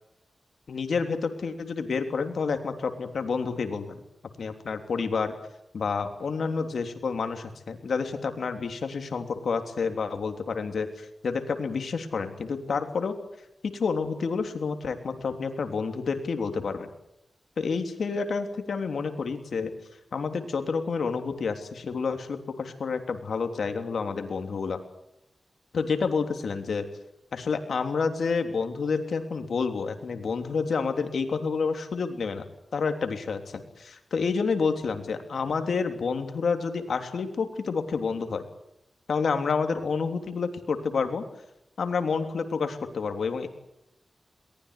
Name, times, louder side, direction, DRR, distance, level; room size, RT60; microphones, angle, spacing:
voice 1, 0.7-4.0 4.4-5.3 5.7-13.1 13.6-16.9 17.6-19.7 20.1-24.8 25.7-26.9 27.3-32.5 32.7-38.4 39.1-41.2 41.8-43.5, left 5 dB, 80° left, 6 dB, 3.3 m, -29 dB
22.5 x 19.5 x 8.4 m, 0.83 s
cardioid pair, 55°, 0 cm